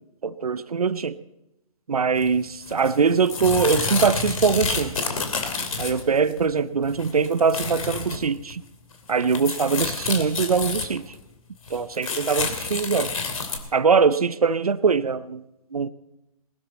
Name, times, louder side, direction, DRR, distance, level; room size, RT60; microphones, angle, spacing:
voice 1, 0.2-1.2 1.9-4.9 5.8-8.6 9.1-11.1 11.7-13.1 13.7-15.4 15.7-15.9, right 5 dB, 80° right, 15 dB, 0.7 m, -22 dB
sound 1, 2.2-2.3 2.7-6.4 6.8-8.2 8.5-8.6 8.9-11.2 11.7-13.6, left 4 dB, 70° left, 2.8 m, -29 dB
21.0 x 12.5 x 4.1 m, 0.90 s
figure-of-eight pair, 130°, 19 cm